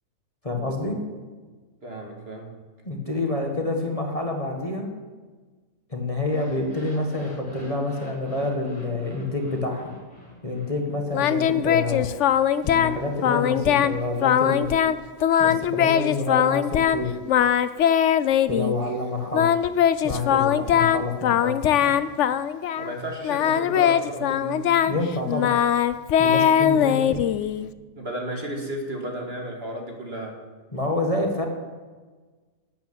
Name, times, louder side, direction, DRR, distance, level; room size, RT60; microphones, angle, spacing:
voice 1, 0.4-1.0 2.9-4.9 5.9-9.9 10.4-12.1 12.6-14.7 15.4-17.1 18.5-19.5 20.0-21.9 24.8-25.5 26.2-27.2 30.7-31.5, left 2 dB, 25° left, 1 dB, 1.8 m, -28 dB
voice 2, 1.8-2.6 22.8-24.8 28.0-30.4, right 1 dB, 45° right, 1 dB, 2.4 m, -33 dB
sound 1, 6.2-11.4, equal, 5° left, 4.6 m, -46 dB
Singing, 11.1-13.0 13.2-13.9 14.2-15.0 15.2-17.0 17.3-18.7 19.3-22.9 23.2-27.7, left 9 dB, 65° left, 0.9 m, -21 dB
13.0 x 8.7 x 8.9 m, 1.4 s
omnidirectional pair, 1.5 m